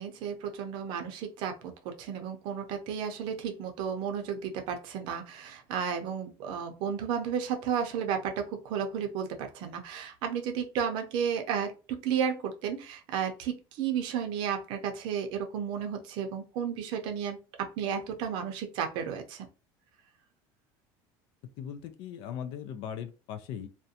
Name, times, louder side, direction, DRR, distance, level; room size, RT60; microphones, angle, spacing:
voice 1, 0.0-19.5, right 7 dB, 55° right, 5 dB, 0.6 m, -33 dB
voice 2, 21.6-23.7, left 9 dB, 55° left, 10 dB, 0.4 m, -39 dB
2.5 x 2.1 x 2.7 m, 0.33 s
cardioid pair, 160°, 10 cm